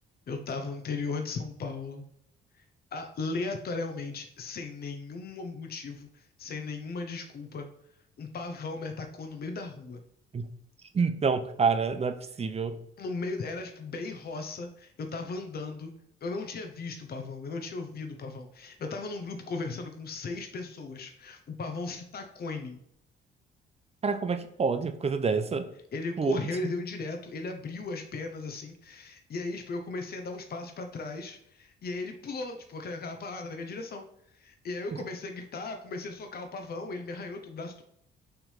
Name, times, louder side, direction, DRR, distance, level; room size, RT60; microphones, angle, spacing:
voice 1, 0.3-2.0 2.5-2.6 2.9-7.7 8.2-10.0 13.0-15.9 16.2-22.8 25.9-34.0 34.3-37.8, left 3 dB, 50° left, 0.9 m, -37 dB
voice 2, 10.9-12.8 24.0-25.6 26.2-26.4, right 5 dB, 30° right, 0.7 m, -27 dB
5.8 x 3.5 x 5.5 m
cardioid pair, 90°, 20 cm